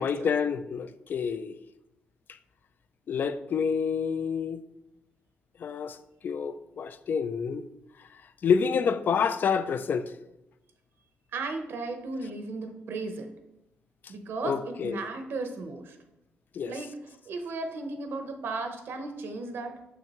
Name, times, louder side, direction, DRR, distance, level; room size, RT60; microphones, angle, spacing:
voice 1, 0.0-1.5 3.1-4.6 5.6-6.0 6.2-7.7 8.4-10.1 14.4-15.1 16.5-16.7, left 6 dB, 50° left, 0.4 m, -28 dB
voice 2, 11.3-13.3 14.1-16.0 16.6-16.9 17.2-19.8, right 3 dB, 70° right, 0.8 m, -35 dB
6.7 x 5.8 x 3.0 m
cardioid pair, 110°, 4 cm